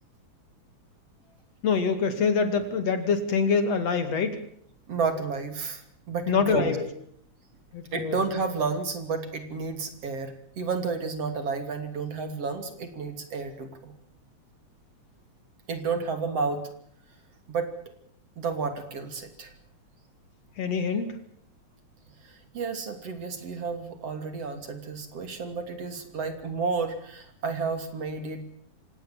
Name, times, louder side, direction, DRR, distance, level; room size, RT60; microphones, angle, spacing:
voice 1, 1.6-4.4 6.3-6.9 7.7-8.2 20.6-21.2, left 5 dB, 60° left, 9 dB, 3.4 m, -25 dB
voice 2, 4.9-5.8 6.1-6.8 7.9-13.9 15.7-16.6 17.5-17.7 18.4-19.5 22.5-28.4, right 4 dB, 55° right, 8 dB, 3.8 m, -31 dB
26.5 x 18.0 x 7.3 m, 0.65 s
omnidirectional pair, 3.4 m